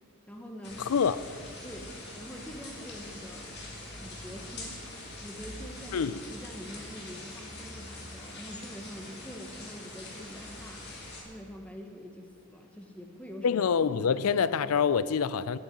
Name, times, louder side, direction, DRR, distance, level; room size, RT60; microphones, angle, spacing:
voice 1, 0.3-0.8 1.6-3.5 4.0-4.9 5.2-10.9 11.2-13.6 14.0-14.3, equal, 5° left, 1.0 m, -45 dB
sound 1, 0.6-11.2, left 2 dB, 50° left, 2.4 m, -44 dB
voice 2, 0.9-1.2 5.9-6.2 13.4-15.6, left 6 dB, 80° left, 0.4 m, -26 dB
8.9 x 8.6 x 9.6 m
head